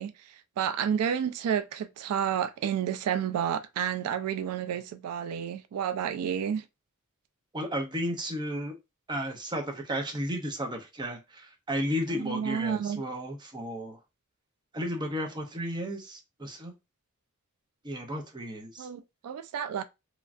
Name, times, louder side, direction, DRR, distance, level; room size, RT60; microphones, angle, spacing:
voice 1, 0.0-6.7 12.1-13.0 18.8-19.8, right 8 dB, 90° right, 0.3 m, -30 dB
voice 2, 7.5-8.7 9.1-14.0 14.7-16.7 17.8-18.9, equal, 20° right, 0.6 m, -33 dB
3.0 x 2.3 x 2.4 m
head